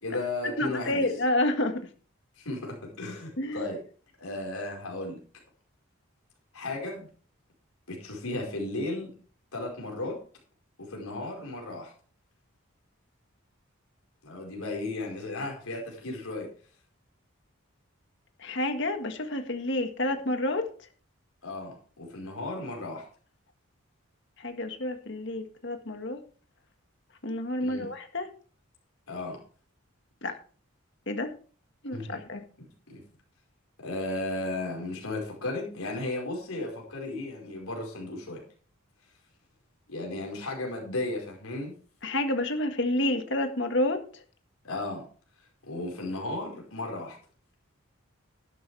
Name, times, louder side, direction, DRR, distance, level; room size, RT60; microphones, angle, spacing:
voice 1, 0.0-1.1 2.4-3.8 4.2-5.2 6.5-7.1 7.9-9.1 9.5-10.2 10.8-11.9 14.2-16.5 21.4-23.1 27.6-27.9 29.1-29.4 31.9-32.2 32.9-33.0 33.8-38.4 39.9-41.7 44.6-45.0 45.6-47.2, left 2 dB, 90° left, -1 dB, 4.8 m, -35 dB
voice 2, 0.6-1.8 3.4-3.6 18.4-20.7 24.4-26.2 27.2-28.3 30.2-30.4 31.1-31.3 31.8-32.4 42.0-44.0, left 1 dB, 55° left, 6 dB, 1.8 m, -29 dB
12.0 x 12.0 x 3.4 m, 0.40 s
head